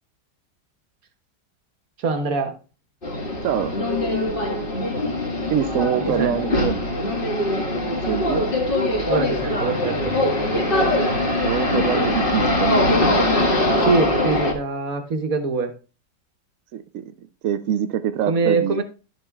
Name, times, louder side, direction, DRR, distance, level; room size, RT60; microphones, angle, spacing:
voice 1, 2.0-2.6 6.2-6.4 9.0-10.1 13.8-15.7 18.3-18.8, right 4 dB, 55° right, 1.5 m, -23 dB
sound 1, 3.0-14.5, left 1 dB, 30° left, 2.0 m, -22 dB
voice 2, 3.4-3.8 5.5-6.7 7.8-8.4 10.7-11.1 11.4-12.8 16.7-17.1 17.4-18.8, right 10 dB, 70° right, 0.7 m, -25 dB
12.0 x 7.0 x 2.3 m
omnidirectional pair, 1.9 m